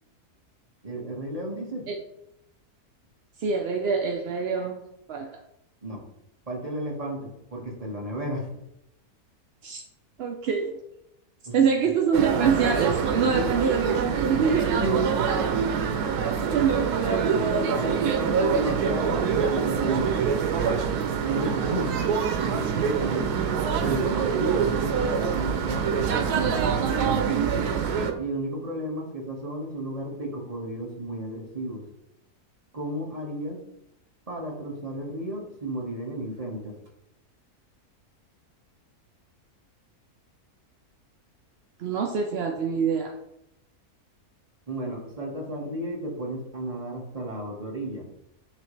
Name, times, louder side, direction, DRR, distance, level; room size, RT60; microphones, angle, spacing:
voice 1, 0.8-1.8 5.8-6.0 6.5-8.5 11.5-11.6 13.3-13.6 14.8-15.2 17.2-20.1 21.2-21.9 22.4-23.3 23.8-27.3 28.2-31.8 32.7-33.6 34.3-36.7 44.7-48.0, right 1 dB, 25° right, -2 dB, 1.5 m, -33 dB
voice 2, 3.4-5.3 9.6-9.8 10.2-10.8 11.5-14.8 15.2-15.3 16.5-18.4 41.8-43.2, right 5 dB, 65° right, 3 dB, 0.6 m, -26 dB
sound 1, 12.1-28.1, right 6 dB, 90° right, 1.3 m, -25 dB
9.9 x 3.4 x 3.2 m, 0.81 s
omnidirectional pair, 1.6 m